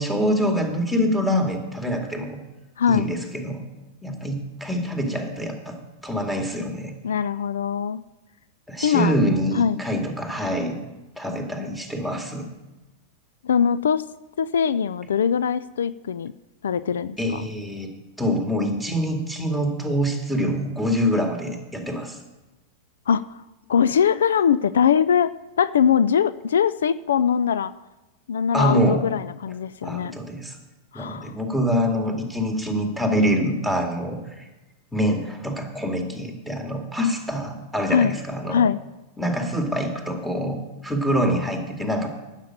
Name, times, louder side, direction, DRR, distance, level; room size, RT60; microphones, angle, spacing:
voice 1, 0.0-2.4 2.9-3.6 4.0-5.8 6.0-6.9 8.7-10.8 11.2-12.5 17.2-17.9 18.2-22.2 28.5-29.0 29.8-30.6 30.9-34.5 34.9-38.6 39.2-42.1, equal, 5° left, 2 dB, 2.3 m, -25 dB
voice 2, 2.8-3.1 7.0-8.0 8.8-9.2 9.5-9.8 13.4-14.0 14.4-16.3 16.6-17.5 23.1-23.4 23.7-27.7 28.3-30.1 30.9-31.3 37.9-38.1 38.5-38.8, left 7 dB, 80° left, 17 dB, 0.4 m, -22 dB
9.6 x 7.4 x 8.7 m, 1.1 s
hypercardioid pair, 110°, 0 cm